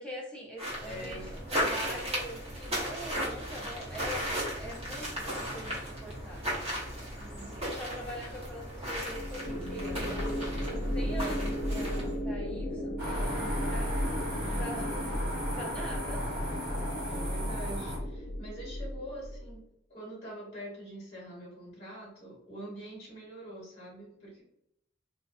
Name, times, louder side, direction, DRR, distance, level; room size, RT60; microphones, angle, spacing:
voice 1, 0.0-4.3 4.6-6.4 7.6-10.3 10.6-14.0 14.5-15.0 15.5-16.3, equal, 5° left, -3 dB, 0.6 m, -43 dB
sound 1, 0.6-12.2, equal, 30° right, 0.9 m, -36 dB
voice 2, 0.8-1.3 7.2-7.8 14.4-14.9 17.1-19.6 19.9-24.4, right 1 dB, 45° left, -6 dB, 1.1 m, -44 dB
sound 2, 9.0-19.5, equal, 75° left, 0.5 m, -34 dB
sound 3, 13.0-18.0, equal, 50° right, 1.4 m, -37 dB
2.6 x 2.1 x 2.5 m, 0.76 s
head